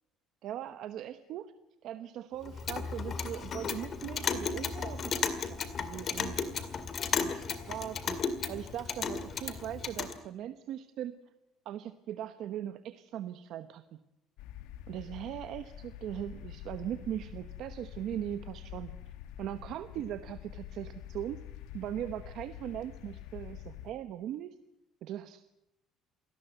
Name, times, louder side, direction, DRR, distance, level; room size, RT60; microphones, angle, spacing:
voice 1, 0.4-1.5 1.8-6.7 7.1-8.2 8.5-11.1 11.6-14.0 14.9-18.9 19.4-21.4 21.7-24.5 25.0-25.5, right 11 dB, 55° right, 10 dB, 1.0 m, -40 dB
Clock, 2.4-10.2, left 6 dB, 35° left, 2.1 m, -34 dB
sound 1, 14.4-23.9, left 11 dB, 90° left, 1.4 m, -46 dB
28.0 x 18.5 x 8.0 m, 0.90 s
cardioid pair, 170°, 0 cm